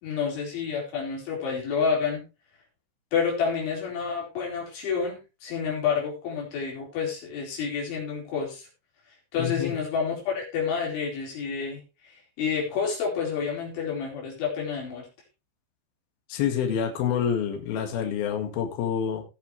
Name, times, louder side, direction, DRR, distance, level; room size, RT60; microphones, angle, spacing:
voice 1, 0.0-2.2 3.1-8.7 9.3-12.1 12.4-15.1, left 6 dB, 75° left, -2 dB, 6.7 m, -29 dB
voice 2, 9.4-9.8 16.3-19.2, left 8 dB, 60° left, 4 dB, 3.4 m, -27 dB
18.0 x 7.2 x 3.3 m, 0.28 s
omnidirectional pair, 5.4 m